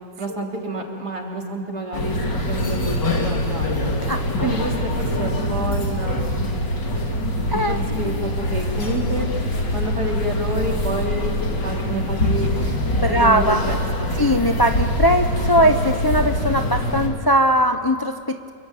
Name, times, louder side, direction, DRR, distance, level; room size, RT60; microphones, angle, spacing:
voice 1, 0.2-2.2 2.4-3.8 4.4-6.6 7.5-9.3 9.7-11.3 11.6-12.5 13.0-14.1, right 1 dB, 60° right, 0 dB, 3.9 m, -29 dB
sound 1, 1.9-17.1, left 1 dB, 70° left, 3.6 m, -24 dB
voice 2, 4.1-4.5 7.5-7.8 12.9-13.6 14.2-18.5, equal, 20° left, 7 dB, 0.6 m, -20 dB
27.5 x 23.0 x 9.4 m, 2.3 s
omnidirectional pair, 1.9 m